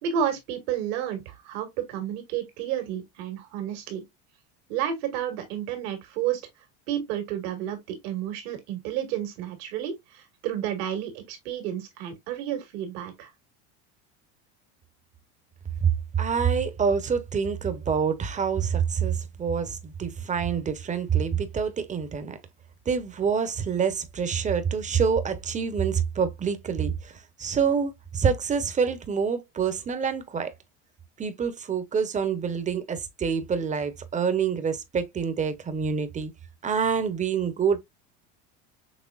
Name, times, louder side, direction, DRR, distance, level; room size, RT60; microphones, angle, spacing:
voice 1, 0.0-4.0 4.7-6.4 6.9-13.3, right 9 dB, 75° right, 2.0 m, -31 dB
voice 2, 16.2-22.4 22.9-27.1 27.4-30.5 31.2-36.3 36.6-37.8, right 6 dB, 20° right, 0.9 m, -26 dB
6.2 x 3.2 x 2.4 m
supercardioid pair, 115°, 33 cm